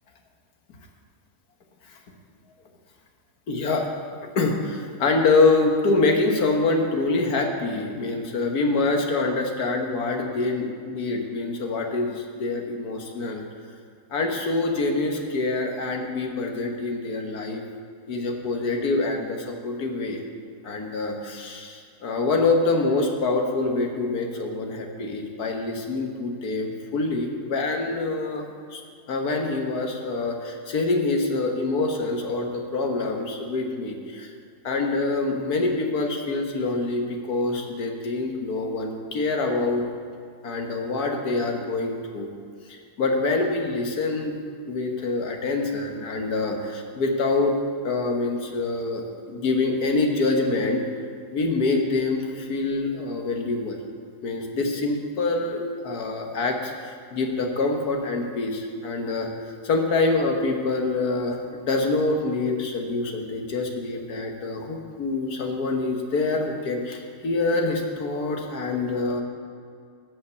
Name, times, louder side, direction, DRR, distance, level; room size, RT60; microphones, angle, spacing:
voice 1, 3.5-3.9 4.4-13.4 14.1-17.6 18.1-20.2 20.6-28.5 28.7-28.8 29.1-34.3 34.6-39.9 40.4-42.3 42.7-44.4 44.7-47.6 47.8-49.0 49.3-50.8 51.3-53.8 54.2-59.3 59.6-69.2, left 3 dB, 75° left, 2 dB, 1.8 m, -25 dB
13.5 x 5.7 x 8.1 m, 2.3 s
omnidirectional pair, 1.7 m